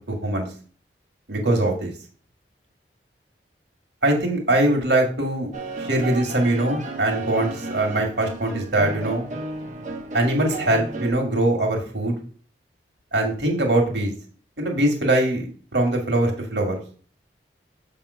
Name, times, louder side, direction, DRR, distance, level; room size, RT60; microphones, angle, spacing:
voice 1, 0.1-0.5 1.3-1.9 4.0-5.5 5.8-9.3 10.1-12.1 13.1-14.1 14.6-15.5 15.7-16.7, right 1 dB, 80° right, 2 dB, 2.1 m, -22 dB
sound 1, 5.5-11.1, right 2 dB, 45° right, 1.1 m, -33 dB
7.5 x 3.6 x 5.6 m, 0.41 s
head